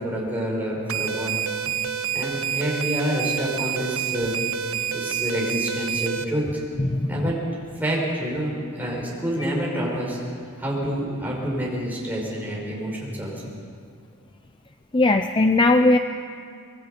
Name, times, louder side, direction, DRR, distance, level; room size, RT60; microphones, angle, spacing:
voice 1, 0.0-1.4 2.1-4.3 4.9-6.6 7.1-7.4 7.8-10.2 10.6-13.4, equal, 10° right, -5 dB, 5.8 m, -27 dB
sound 1, 0.9-6.2, right 8 dB, 70° right, 0.8 m, -28 dB
voice 2, 6.8-7.2 14.9-16.0, left 2 dB, 20° left, 7 dB, 0.5 m, -18 dB
26.0 x 21.0 x 5.3 m, 2.3 s
head